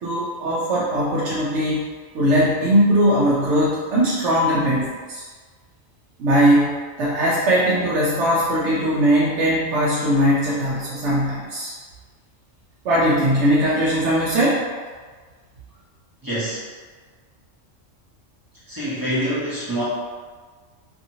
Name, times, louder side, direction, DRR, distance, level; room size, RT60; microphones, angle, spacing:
voice 1, 0.0-1.9 2.1-5.2 6.2-11.7 12.8-14.6, equal, 70° right, -7 dB, 0.9 m, -20 dB
voice 2, 16.2-16.6 18.7-19.8, equal, 20° right, -10 dB, 0.6 m, -25 dB
2.7 x 2.7 x 2.7 m, 1.5 s
omnidirectional pair, 1.3 m